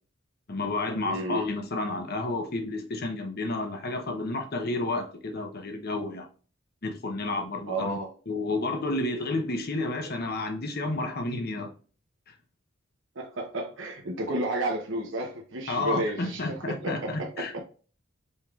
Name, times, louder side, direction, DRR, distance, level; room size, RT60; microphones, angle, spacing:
voice 1, 0.5-6.3 6.8-8.0 8.3-11.7 15.7-17.6, left 2 dB, 50° left, 0.8 m, -31 dB
voice 2, 1.0-1.4 7.7-8.1 13.2-16.4 16.8-17.3, right 1 dB, 60° right, 0.8 m, -31 dB
5.3 x 3.5 x 2.3 m
head